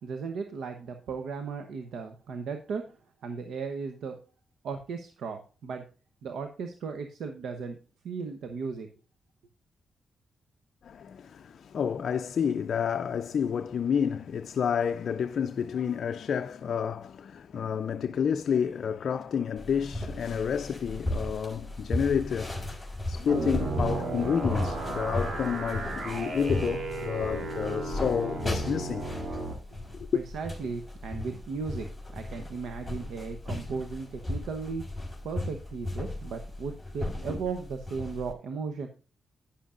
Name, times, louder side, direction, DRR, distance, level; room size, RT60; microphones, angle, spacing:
voice 1, 0.0-2.8 3.2-4.2 4.6-5.8 6.2-7.8 8.0-8.9 30.1-34.8 35.2-38.9, right 5 dB, 85° right, 0.9 m, -36 dB
voice 2, 10.8-22.6 23.1-29.1 29.9-30.2, left 7 dB, 70° left, 0.4 m, -30 dB
sound 1, 19.6-38.3, left 1 dB, ahead, 4.0 m, -36 dB
sound 2, 23.3-29.5, right 3 dB, 65° right, 2.9 m, -34 dB
11.5 x 10.0 x 2.5 m
cardioid pair, 70°, 0 cm